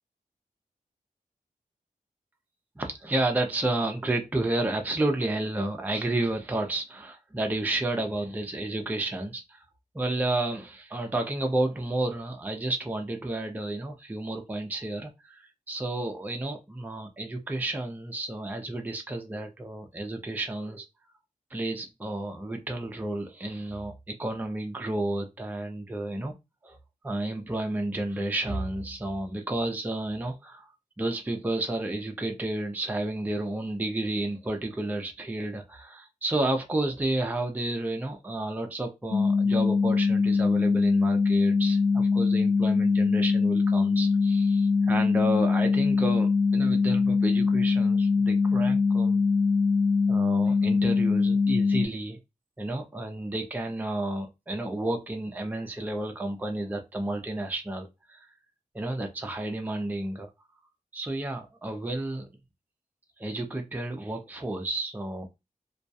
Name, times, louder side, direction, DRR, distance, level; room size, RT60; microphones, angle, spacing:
voice 1, 2.8-9.6 9.9-20.9 21.5-26.3 26.6-26.8 27.0-30.7 31.0-49.2 50.1-52.2 52.6-58.3 58.7-60.3 60.9-62.3 63.2-65.3, right 2 dB, 10° right, 0.4 m, -31 dB
sound 1, 39.1-51.9, left 4 dB, 70° left, 0.4 m, -23 dB
2.3 x 2.2 x 2.6 m
wide cardioid pair, 105°, 15 cm